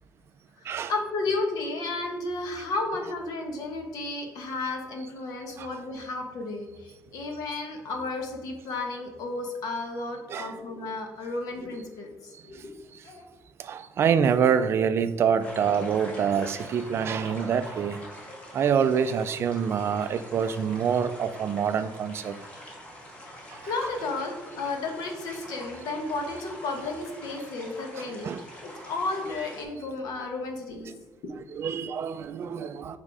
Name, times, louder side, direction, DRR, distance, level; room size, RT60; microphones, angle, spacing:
voice 1, 0.6-12.7 13.0-13.2 23.2-28.3 28.8-30.9 31.2-31.4, left 3 dB, 60° left, 3 dB, 1.2 m, -33 dB
voice 2, 13.6-18.0 18.5-22.4 28.0-28.4 31.5-33.0, right 7 dB, 35° right, 11 dB, 0.3 m, -26 dB
sound 1, 15.4-29.6, equal, 20° left, 1.2 m, -44 dB
7.4 x 3.6 x 4.9 m, 1.2 s
cardioid pair, 175°, 7 cm